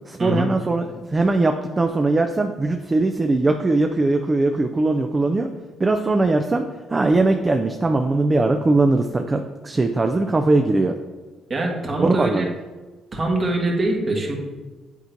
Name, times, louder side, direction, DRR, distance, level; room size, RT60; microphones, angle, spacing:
voice 1, 0.1-5.5 5.8-11.0 12.0-12.5, right 2 dB, 25° right, 5 dB, 0.4 m, -20 dB
voice 2, 11.5-12.5 13.1-14.3, right 1 dB, 40° right, -1 dB, 1.5 m, -23 dB
8.3 x 4.4 x 2.7 m, 1.3 s
supercardioid pair, 65°, 0 cm